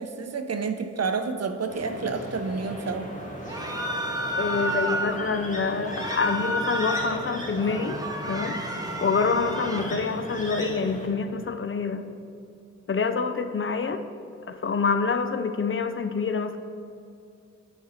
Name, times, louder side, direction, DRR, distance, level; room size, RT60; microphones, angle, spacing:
voice 1, 0.0-3.1, right 4 dB, 60° right, 8 dB, 0.6 m, -29 dB
sound 1, 1.7-11.1, equal, 25° left, 1.6 m, -37 dB
sound 2, 3.5-5.2 5.9-7.2 7.6-9.9, right 1 dB, 15° right, 0.8 m, -31 dB
voice 2, 4.3-8.0 8.3-8.6 9.0-12.1 12.9-14.0 14.5-16.6, left 5 dB, 45° left, 9 dB, 0.4 m, -26 dB
8.5 x 5.1 x 4.2 m, 2.5 s
cardioid pair, 45°, 29 cm